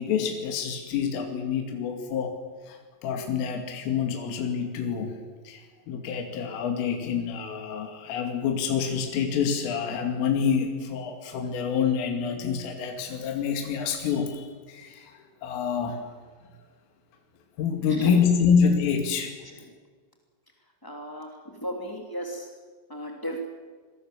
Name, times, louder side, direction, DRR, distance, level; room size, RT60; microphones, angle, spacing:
voice 1, 0.0-2.3 2.7-5.1 5.4-16.1 17.6-19.3, left 6 dB, 75° left, 3 dB, 4.9 m, -27 dB
voice 2, 20.8-21.3 21.6-22.5 22.9-23.4, equal, 15° left, 1 dB, 0.8 m, -34 dB
27.0 x 20.5 x 7.4 m, 1.5 s
omnidirectional pair, 5.9 m